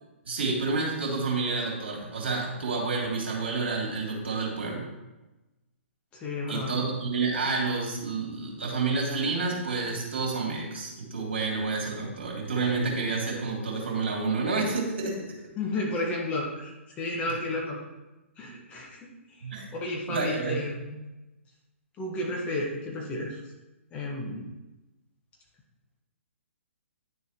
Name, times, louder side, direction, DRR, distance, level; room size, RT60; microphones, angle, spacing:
voice 1, 0.2-4.9 6.5-15.2 17.2-17.3 18.4-18.6 19.4-19.7 20.1-20.6, right 4 dB, 55° right, -2 dB, 3.1 m, -29 dB
voice 2, 6.1-6.7 15.6-17.8 18.4-19.0 19.3-19.4 19.7-21.0 22.0-23.4 23.9-24.5, left 2 dB, 15° left, -2 dB, 1.5 m, -32 dB
10.5 x 7.0 x 3.1 m, 1.0 s
figure-of-eight pair, 125°, 7 cm